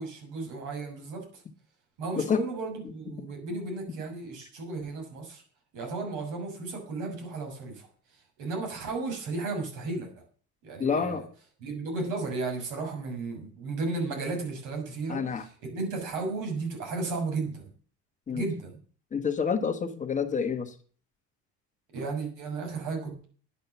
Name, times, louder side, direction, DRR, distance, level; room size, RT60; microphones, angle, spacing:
voice 1, 0.0-1.4 2.0-5.4 5.7-10.1 10.6-11.2 11.6-17.6 18.3-18.7 21.9-23.2, right 3 dB, 80° right, 3 dB, 6.6 m, -34 dB
voice 2, 10.8-11.2 15.1-15.4 18.3-18.4 19.1-20.7, left 6 dB, 25° left, 6 dB, 1.3 m, -28 dB
11.0 x 9.7 x 7.1 m, 0.43 s
cardioid pair, 145°, 30 cm